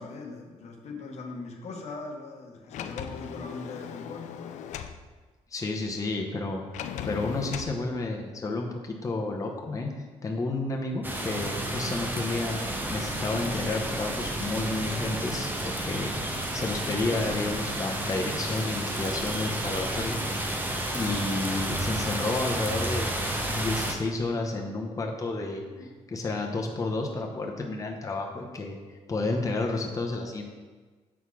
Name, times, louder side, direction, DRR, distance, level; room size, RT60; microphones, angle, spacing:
voice 1, 0.0-4.7 25.8-26.0, left 3 dB, 65° left, 2 dB, 1.0 m, -40 dB
Sliding door, 2.7-5.0 6.7-7.8, left 9 dB, 80° left, 0.4 m, -37 dB
voice 2, 5.5-9.9 10.2-20.5 20.9-30.4, left 2 dB, 25° left, 1 dB, 0.9 m, -31 dB
sound 1, 11.0-23.9, right 1 dB, 15° right, 0.9 m, -31 dB
7.1 x 4.1 x 4.8 m, 1.4 s
cardioid pair, 90°, 12 cm